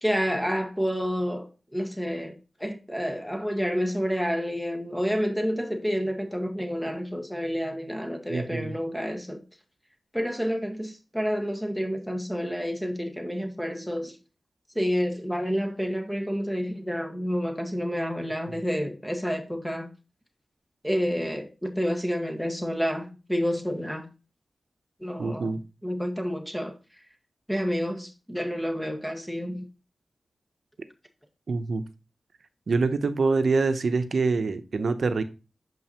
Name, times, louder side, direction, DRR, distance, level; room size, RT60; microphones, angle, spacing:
voice 1, 0.0-9.4 10.1-14.2 14.7-19.9 20.8-24.1 25.0-25.5 25.8-26.7 27.5-29.6, equal, 5° left, 1.6 m, -29 dB
voice 2, 8.3-8.7 18.5-18.6 25.2-25.6 31.5-31.8 32.7-35.2, right 4 dB, 70° right, 0.8 m, -25 dB
7.6 x 5.5 x 3.0 m
cardioid pair, 50°, 0 cm